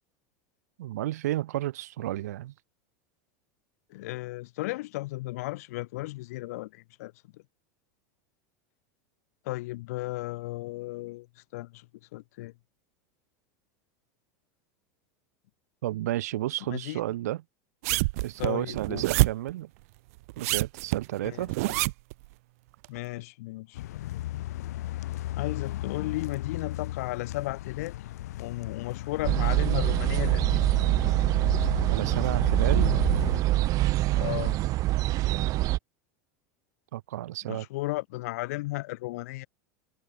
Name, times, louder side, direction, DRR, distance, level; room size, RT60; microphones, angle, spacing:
voice 1, 0.8-2.5 15.8-17.4 18.2-19.7 20.4-21.5 31.9-33.0 36.9-37.7, right 14 dB, 90° right, 3.7 m, -32 dB
voice 2, 3.9-7.4 9.4-11.3 11.5-12.5 16.7-17.0 18.4-19.1 21.2-21.8 22.9-23.8 24.6-24.7 25.4-27.9 28.4-30.6 34.1-34.6 37.5-39.5, left 19 dB, 75° left, 4.2 m, -35 dB
sound 1, 17.8-19.5 20.3-22.1 22.8-22.9, right 23 dB, 70° right, 3.0 m, -26 dB
sound 2, 23.7-33.4, left 15 dB, 90° left, 2.1 m, -35 dB
sound 3, 29.2-35.8, right 17 dB, 45° right, 2.0 m, -25 dB
supercardioid pair, 140°, 8 cm